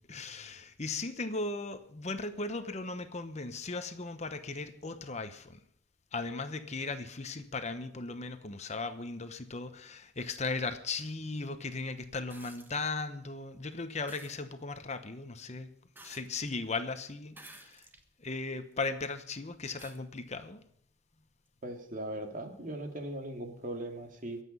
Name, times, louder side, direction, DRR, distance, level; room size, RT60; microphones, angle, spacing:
voice 1, 0.1-5.6 6.1-15.7 16.0-17.8 18.2-20.6, left 3 dB, 35° left, 9 dB, 0.9 m, -37 dB
sound 1, 12.3-12.8 14.1-14.4 16.0-16.6 17.3-18.1 18.7-18.8 19.8-20.0 21.5-21.6, right 2 dB, 10° right, 1.3 m, -52 dB
voice 2, 21.6-24.4, right 1 dB, 45° right, 4 dB, 2.3 m, -39 dB
23.0 x 8.4 x 5.5 m, 0.66 s
head